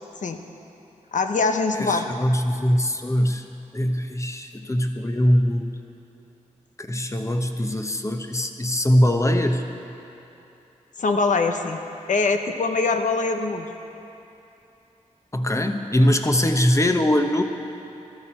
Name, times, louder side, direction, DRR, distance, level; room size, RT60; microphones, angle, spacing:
voice 1, 1.1-2.1 11.0-11.8 12.1-13.7, left 3 dB, 70° left, 6 dB, 0.9 m, -23 dB
voice 2, 1.7-3.4 3.7-5.7 6.8-9.7 15.3-17.4, equal, 20° left, 6 dB, 1.0 m, -22 dB
14.5 x 13.0 x 4.4 m, 2.9 s
cardioid pair, 50°, 13 cm